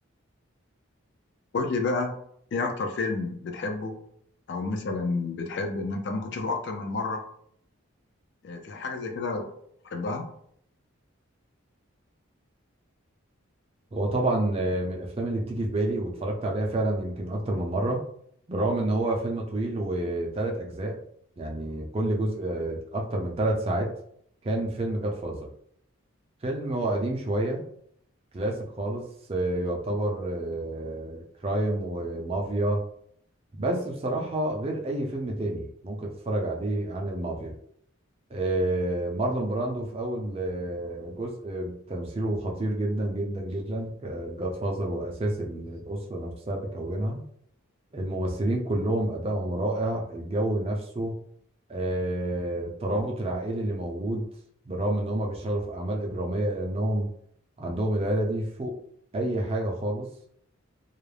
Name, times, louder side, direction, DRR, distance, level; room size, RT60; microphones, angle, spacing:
voice 1, 1.5-2.2 2.5-4.0 4.5-7.2 8.4-9.5 9.9-10.3, left 3 dB, 50° left, 4 dB, 0.3 m, -30 dB
voice 2, 13.9-18.0 18.5-21.0 21.4-23.9 24.4-25.5 26.4-27.6 28.3-29.0 29.3-32.8 33.5-37.6 38.3-47.2 47.9-51.2 51.7-54.2 54.6-57.1 57.6-58.7 59.1-60.1, right 1 dB, 30° right, 0 dB, 0.4 m, -29 dB
2.3 x 2.0 x 3.2 m, 0.67 s
head